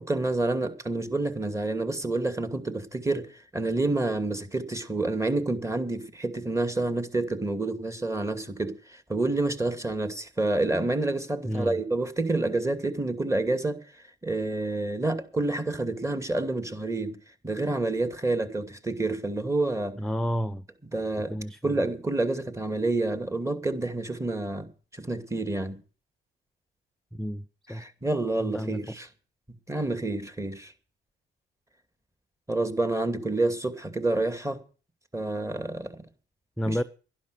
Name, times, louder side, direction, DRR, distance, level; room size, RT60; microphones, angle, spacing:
voice 1, 0.0-13.8 14.2-17.2 17.4-20.0 20.9-21.4 21.6-24.7 25.0-25.8 27.7-29.1 29.7-30.7 32.5-34.6 35.1-35.9 36.7-36.8, right 2 dB, 15° right, 2.5 m, -28 dB
voice 2, 11.4-11.8 20.0-20.6 21.3-21.7 27.1-27.8 28.4-28.8 36.6-36.8, equal, ahead, 0.6 m, -31 dB
12.0 x 11.5 x 6.9 m
cardioid pair, 90°, 20 cm